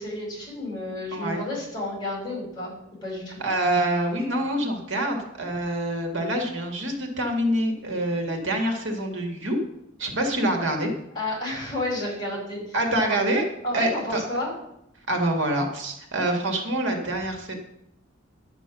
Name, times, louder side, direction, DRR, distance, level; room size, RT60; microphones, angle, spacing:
voice 1, 0.0-2.7 3.0-3.4 11.1-12.8 13.6-14.5, left 1 dB, 20° left, -2 dB, 5.1 m, -31 dB
voice 2, 1.1-1.4 3.4-9.6 10.0-10.9 12.7-13.4 13.7-14.2 15.1-17.5, right 1 dB, 65° right, 3 dB, 2.1 m, -26 dB
11.0 x 9.0 x 6.1 m, 0.80 s
head